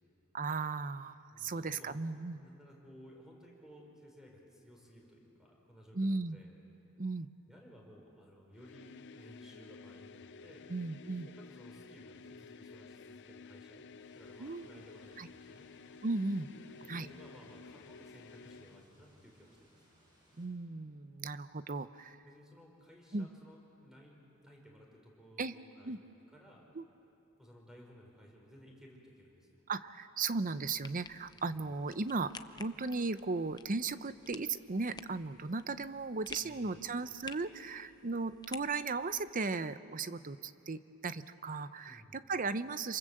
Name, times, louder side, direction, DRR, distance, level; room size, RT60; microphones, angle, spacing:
voice 1, 0.3-2.4 5.9-6.4 7.0-7.3 10.7-11.3 14.4-14.7 15.2-15.3 16.0-16.5 16.9-17.1 20.4-22.2 23.1-23.3 25.4-25.5 25.8-26.0 26.7-26.8 29.7-32.3 32.6-43.0, right 3 dB, 40° right, 13 dB, 0.7 m, -36 dB
voice 2, 1.3-2.0 2.3-6.5 7.5-10.7 11.3-13.8 14.1-15.7 16.9-19.8 22.2-26.0 26.3-26.7 27.4-29.5 31.5-31.6 36.4-36.9 41.8-42.2, equal, 5° right, -1 dB, 5.3 m, -57 dB
sound 1, 8.5-18.9, left 4 dB, 55° left, 0.6 m, -53 dB
sound 2, 14.0-20.5, equal, 20° right, 7.3 m, -68 dB
sound 3, 30.6-39.3, left 5 dB, 20° left, 0.7 m, -53 dB
28.0 x 26.5 x 7.8 m, 2.9 s
head